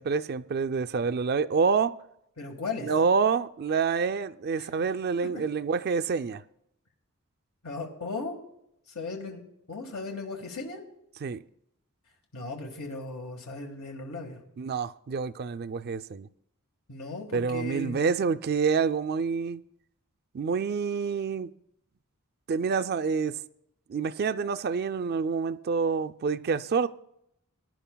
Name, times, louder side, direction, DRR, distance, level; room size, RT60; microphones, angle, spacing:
voice 1, 0.0-1.9 2.8-6.4 11.2-11.4 14.6-16.3 17.3-19.6 20.3-21.5 22.5-23.4 23.9-26.9, right 5 dB, 45° right, 0.4 m, -27 dB
voice 2, 2.4-2.9 4.6-4.7 7.6-8.4 8.9-9.4 9.7-10.8 12.3-14.4 16.9-18.1, left 3 dB, 80° left, 1.6 m, -36 dB
20.5 x 10.5 x 2.3 m
head